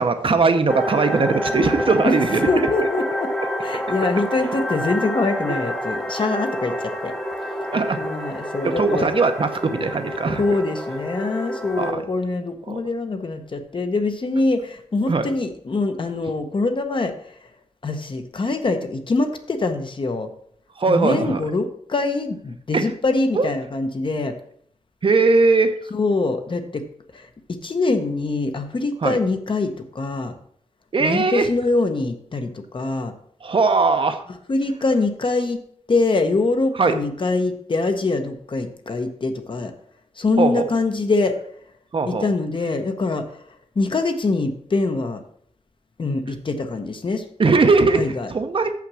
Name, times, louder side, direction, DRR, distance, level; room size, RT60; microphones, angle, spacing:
voice 1, 0.0-2.7 5.5-5.6 7.7-8.0 8.6-10.4 11.8-12.0 12.7-12.8 15.1-15.3 20.8-21.4 22.7-22.9 23.3-23.5 25.0-25.7 29.0-29.2 30.9-31.5 33.4-34.2 36.8-36.9 40.4-40.7 41.9-42.2 47.4-48.0 48.3-48.7, right 4 dB, 45° right, 7 dB, 0.8 m, -19 dB
sound 1, 0.7-11.9, equal, 5° left, 0.9 m, -28 dB
voice 2, 2.5-3.3 3.6-7.1 7.6-7.7 8.0-9.2 10.4-17.1 17.8-20.3 20.9-24.4 25.9-26.8 27.1-30.4 31.0-33.1 34.5-35.6 35.9-39.7 40.2-41.4 42.1-43.4 43.8-45.2 46.0-47.2 47.9-48.3, left 3 dB, 45° left, 7 dB, 0.9 m, -24 dB
7.2 x 5.9 x 6.2 m, 0.64 s
wide cardioid pair, 145°, 12 cm